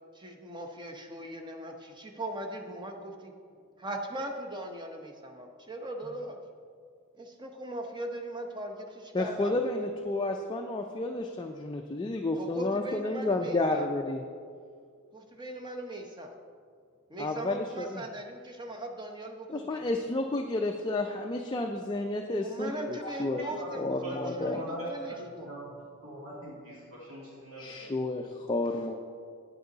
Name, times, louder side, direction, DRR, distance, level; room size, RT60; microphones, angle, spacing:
voice 1, 0.1-3.3 3.8-6.4 7.2-9.7 12.3-13.9 15.1-16.3 17.1-19.9 22.4-25.5, right 1 dB, 20° right, 3 dB, 0.8 m, -39 dB
voice 2, 9.1-14.2 17.2-18.0 19.5-23.4 23.7-24.6 27.6-28.9, left 2 dB, 20° left, 3 dB, 0.4 m, -31 dB
voice 3, 23.0-25.7 26.0-27.9, right 1 dB, 80° right, -5 dB, 2.3 m, -41 dB
8.7 x 7.8 x 4.0 m, 2.1 s
head